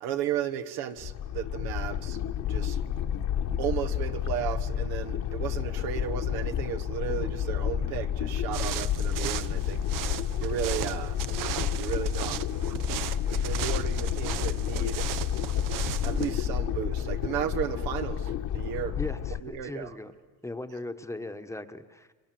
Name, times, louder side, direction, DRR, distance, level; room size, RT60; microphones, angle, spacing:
voice 1, 0.0-2.2 2.5-2.8 3.6-9.8 10.4-11.2 11.8-12.4 13.4-15.1 15.8-19.0 19.4-20.0, right 10 dB, 80° right, 1.6 m, -34 dB
sound 1, 1.0-19.4, left 9 dB, 55° left, 1.4 m, -30 dB
sound 2, 8.5-16.3, right 12 dB, 60° right, 0.9 m, -36 dB
voice 2, 19.0-20.1 20.4-22.1, left 2 dB, 10° left, 1.2 m, -38 dB
30.0 x 23.5 x 7.7 m
cardioid pair, 115°, 37 cm